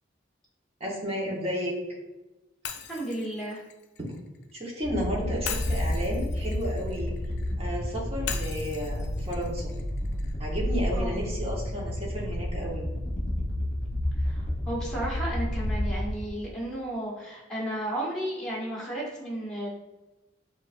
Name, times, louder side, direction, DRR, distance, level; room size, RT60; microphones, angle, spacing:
voice 1, 0.8-1.7 4.6-7.1 7.6-9.7 10.4-12.9, equal, 30° right, -3 dB, 1.1 m, -32 dB
Shatter, 2.6-4.7 5.4-7.5 8.3-10.4, left 8 dB, 55° left, 0.4 m, -40 dB
voice 2, 2.9-3.6 10.9-11.1 14.2-19.7, right 1 dB, 5° left, -6 dB, 1.1 m, -33 dB
sound 1, 4.8-16.4, left 1 dB, 40° left, 0.9 m, -30 dB
6.4 x 2.6 x 2.6 m, 1.1 s
head